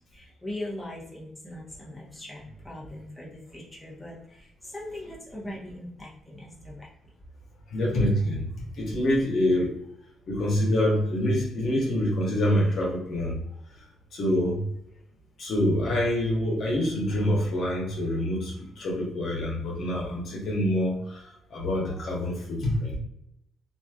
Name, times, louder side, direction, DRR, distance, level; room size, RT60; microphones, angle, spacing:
voice 1, 0.1-6.9, left 1 dB, 5° left, -6 dB, 1.1 m, -40 dB
voice 2, 7.7-9.8 10.3-13.4 13.8-13.9 14.1-14.6 15.4-23.0, left 1 dB, 65° left, -3 dB, 1.1 m, -26 dB
3.1 x 2.6 x 2.4 m, 0.77 s
cardioid pair, 90°, 0 cm